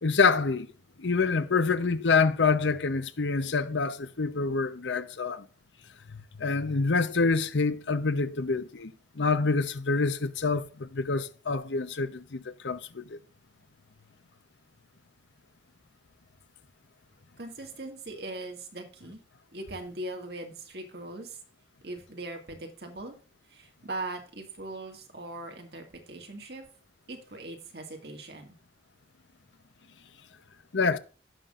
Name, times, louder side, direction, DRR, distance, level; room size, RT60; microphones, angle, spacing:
voice 1, 0.0-0.7 1.0-5.5 6.1-13.2 30.7-31.0, left 4 dB, 85° left, 0.8 m, -27 dB
voice 2, 17.4-19.2 19.5-21.4 21.8-23.1 23.5-26.7 27.1-28.6, right 2 dB, 60° right, 1.9 m, -40 dB
16.5 x 5.9 x 2.5 m
head